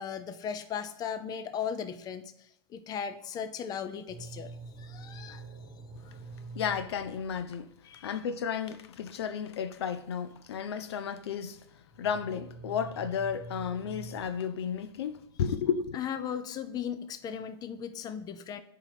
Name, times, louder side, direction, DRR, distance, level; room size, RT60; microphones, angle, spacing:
voice 1, 0.0-5.5 7.8-8.1 15.9-18.6, left 7 dB, 30° left, 0.6 m, -37 dB
sound 1, 4.1-8.2 11.9-14.3, right 3 dB, 35° right, 1.2 m, -46 dB
voice 2, 6.5-7.7 8.0-11.6 12.0-16.0, left 7 dB, 80° left, 0.6 m, -33 dB
4.7 x 4.6 x 5.7 m
hypercardioid pair, 115°, 13 cm